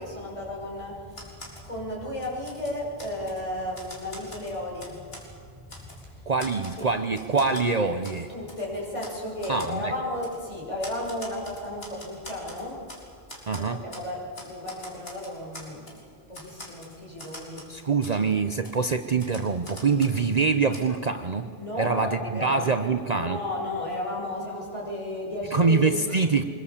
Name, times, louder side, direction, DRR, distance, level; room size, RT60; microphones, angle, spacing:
voice 1, 0.0-6.3 6.8-6.9 8.3-12.8 13.6-16.0 16.3-17.9 18.1-18.2 21.6-22.7 23.1-26.2, left 1 dB, 30° left, -3 dB, 6.3 m, -34 dB
Typewriter, 1.1-1.7 2.1-3.4 3.7-5.3 5.7-6.0 6.4-7.7 8.0-8.2 8.5-8.6 9.0-9.2 9.4-9.7 10.2-10.4 10.8-13.0 13.3-14.1 14.3-16.0 16.3-17.7 18.0-18.2 18.6-20.3 20.7-20.8, left 1 dB, 70° left, 4.7 m, -44 dB
voice 2, 6.3-8.3 9.5-9.9 13.5-13.8 17.7-21.5 21.8-23.4 25.5-26.4, right 4 dB, 40° right, 8 dB, 0.9 m, -24 dB
24.5 x 22.0 x 7.3 m, 2.4 s
omnidirectional pair, 1.1 m